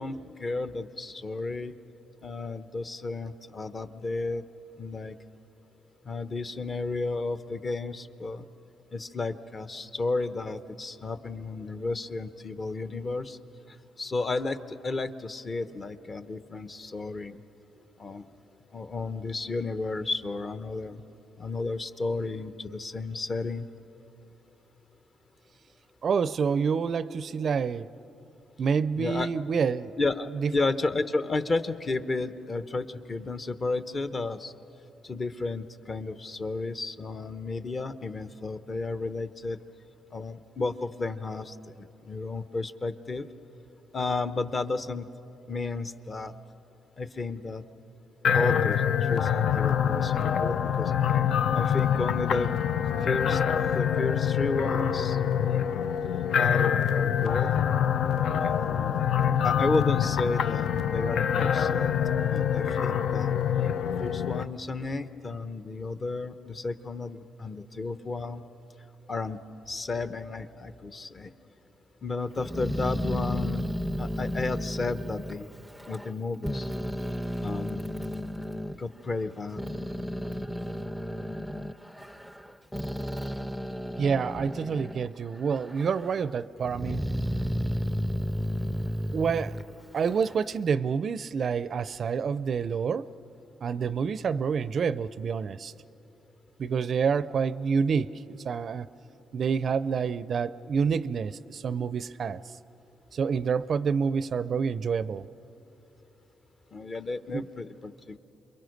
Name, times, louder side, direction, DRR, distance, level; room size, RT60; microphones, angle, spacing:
voice 1, 0.0-1.7 2.2-4.4 4.8-5.1 6.1-8.4 8.9-13.4 14.0-17.4 18.0-18.3 18.7-21.0 21.4-23.7 29.0-29.3 30.0-34.5 35.0-39.6 40.1-43.3 43.9-45.1 45.5-46.3 47.0-47.6 48.3-50.9 51.5-52.5 53.0-53.4 53.7-55.5 56.4-57.6 58.4-59.0 59.4-62.0 62.3-63.3 64.0-68.4 69.1-69.4 69.7-71.3 72.0-73.7 74.0-75.5 75.9-76.7 77.4-77.8 78.7-79.6 80.2-80.3 106.7-108.2, left 3 dB, 35° left, 12 dB, 0.9 m, -32 dB
voice 2, 26.0-27.9 28.6-30.0 30.2-30.5 84.0-87.0 89.1-89.6 89.9-93.1 93.6-95.7 96.6-98.9 99.3-102.4 103.1-105.3 107.3-107.5, right 6 dB, 50° right, 16 dB, 0.5 m, -28 dB
sound 1, 48.2-64.4, left 8 dB, 70° left, 0.5 m, -25 dB
Growling, 72.4-76.1 76.4-78.8 79.3-85.1 85.5-86.2 86.6-90.4, equal, ahead, 0.5 m, -33 dB
28.0 x 22.5 x 6.5 m, 2.9 s
cardioid pair, 90°, 0 cm